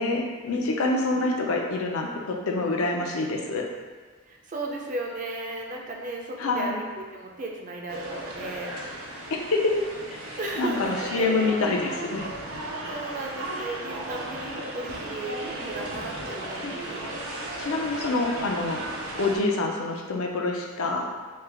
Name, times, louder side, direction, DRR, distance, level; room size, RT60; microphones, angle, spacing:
voice 1, 0.0-3.6 6.4-6.8 9.3-9.7 10.1-12.3 16.6-16.7 17.6-18.8 19.2-21.1, left 3 dB, 75° left, 1 dB, 0.4 m, -26 dB
voice 2, 4.3-8.7 9.9-10.0 10.4-11.5 12.9-17.4 18.8-19.0, right 2 dB, 35° right, 0 dB, 0.4 m, -35 dB
sound 1, 7.9-19.4, right 1 dB, 85° right, 0.6 m, -35 dB
3.2 x 2.2 x 3.4 m, 1.5 s
head